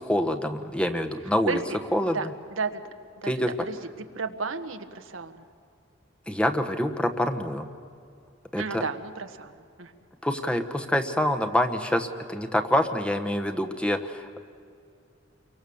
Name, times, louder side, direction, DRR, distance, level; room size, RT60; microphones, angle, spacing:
voice 1, 0.0-1.6 1.9-2.3 3.2-3.5 6.3-7.7 8.5-8.8 10.2-14.4, left 1 dB, 5° left, 5 dB, 1.2 m, -26 dB
voice 2, 2.1-2.8 3.2-3.3 3.7-5.4 8.6-9.5 9.8-9.9, right 4 dB, 90° right, 6 dB, 1.5 m, -33 dB
29.5 x 24.0 x 7.1 m, 2.4 s
head